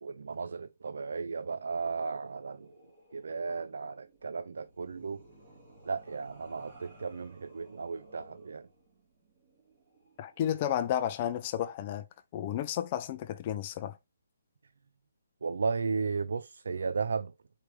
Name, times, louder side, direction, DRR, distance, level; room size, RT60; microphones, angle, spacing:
voice 1, 0.0-2.7 3.1-5.2 5.9-8.7 15.4-17.3, right 4 dB, 70° right, 0.3 m, -35 dB
sound 1, 1.6-10.5, right 1 dB, 30° right, 1.7 m, -58 dB
voice 2, 10.2-12.1 12.3-14.0, left 10 dB, 25° left, 0.4 m, -32 dB
4.7 x 3.2 x 3.1 m
hypercardioid pair, 170°, 0 cm